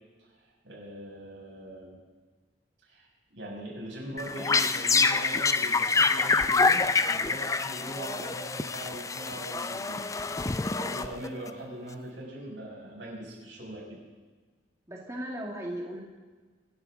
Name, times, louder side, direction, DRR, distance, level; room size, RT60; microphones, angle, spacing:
voice 1, 0.3-2.0 2.8-10.1 10.7-14.0, right 1 dB, 90° right, -3 dB, 6.1 m, -41 dB
sound 1, 4.2-11.5, left 4 dB, 20° left, 0.4 m, -26 dB
voice 2, 14.9-16.0, right 1 dB, 15° right, -1 dB, 1.8 m, -36 dB
26.5 x 11.5 x 3.8 m, 1.4 s
head